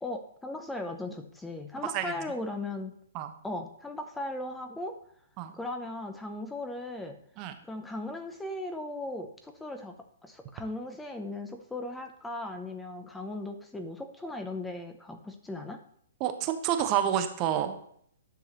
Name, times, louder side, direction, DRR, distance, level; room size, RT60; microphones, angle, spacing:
voice 1, 0.0-2.9 3.4-5.0 5.5-7.2 7.6-9.9 10.2-15.8, left 2 dB, 5° left, 5 dB, 0.6 m, -37 dB
voice 2, 16.2-17.8, right 10 dB, 30° right, 8 dB, 0.9 m, -28 dB
10.0 x 6.3 x 3.1 m, 0.65 s
figure-of-eight pair, 125°, 0 cm